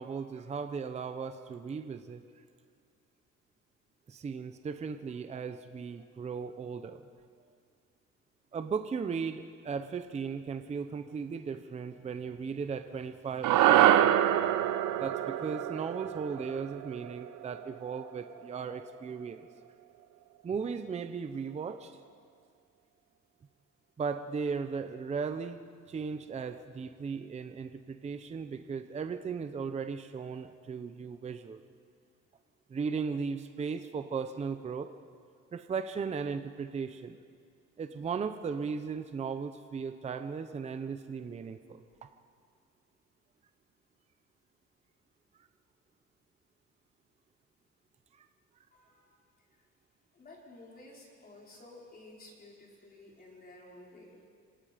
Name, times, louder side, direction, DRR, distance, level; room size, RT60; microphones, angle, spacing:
voice 1, 0.0-2.2 4.1-7.0 8.5-14.2 15.0-19.5 20.4-22.0 24.0-25.6 25.9-31.6 32.7-34.9 35.5-37.2 37.8-41.8 48.1-48.3, right 5 dB, 20° right, 9 dB, 0.7 m, -37 dB
sound 1, 13.4-17.9, right 11 dB, 70° right, 1.0 m, -26 dB
voice 2, 48.7-49.1 50.1-54.3, left 2 dB, 30° left, -2 dB, 4.3 m, -53 dB
27.0 x 26.0 x 5.1 m, 2.2 s
cardioid pair, 160°, 31 cm